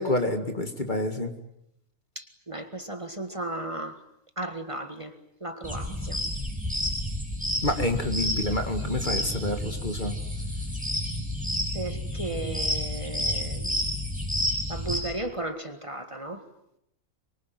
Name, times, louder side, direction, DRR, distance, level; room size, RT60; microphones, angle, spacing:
voice 1, 0.0-1.3 7.6-10.2, left 1 dB, 35° left, 6 dB, 2.2 m, -28 dB
voice 2, 2.2-4.0 4.4-5.1 5.4-6.2 11.7-13.7 14.7-16.4, right 2 dB, 25° right, 7 dB, 1.9 m, -35 dB
sound 1, 5.6-15.0, left 1 dB, 5° right, 8.0 m, -30 dB
24.5 x 24.0 x 9.3 m, 0.78 s
omnidirectional pair, 1.4 m